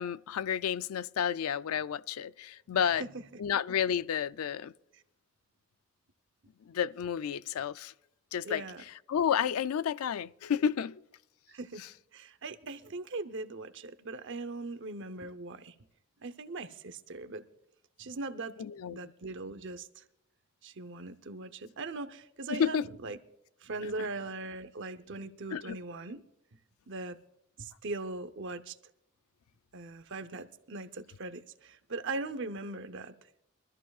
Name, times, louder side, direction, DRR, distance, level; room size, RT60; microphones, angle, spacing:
voice 1, 0.0-3.0 3.4-4.7 6.7-7.9 8.3-8.6 9.1-11.0 18.6-19.0 22.5-22.9 25.5-25.8, left 8 dB, 85° left, 0.4 m, -31 dB
voice 2, 2.7-3.2 4.9-5.0 8.4-8.8 11.5-11.8 12.1-15.7 16.2-17.4 18.0-18.5 18.9-20.0 20.6-23.2 23.6-26.2 26.9-27.2 27.6-28.8 29.7-33.1, right 3 dB, 55° right, 0.8 m, -40 dB
23.5 x 13.5 x 2.4 m
head